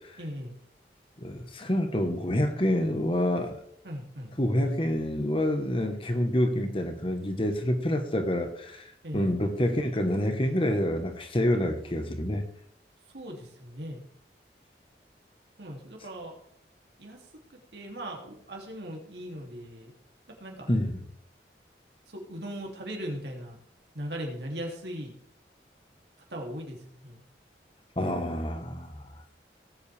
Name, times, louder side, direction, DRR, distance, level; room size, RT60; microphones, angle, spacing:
voice 1, 0.2-0.5 3.8-4.3 9.0-9.4 13.1-14.0 15.6-16.3 17.0-17.2 17.7-19.9 20.4-20.7 22.1-23.6 23.9-25.1 26.3-27.2, equal, 75° right, 1 dB, 2.8 m, -38 dB
voice 2, 1.2-3.6 4.4-12.4 20.7-21.0 28.0-29.0, left 1 dB, 30° left, 6 dB, 1.3 m, -27 dB
18.0 x 8.1 x 3.5 m, 0.70 s
head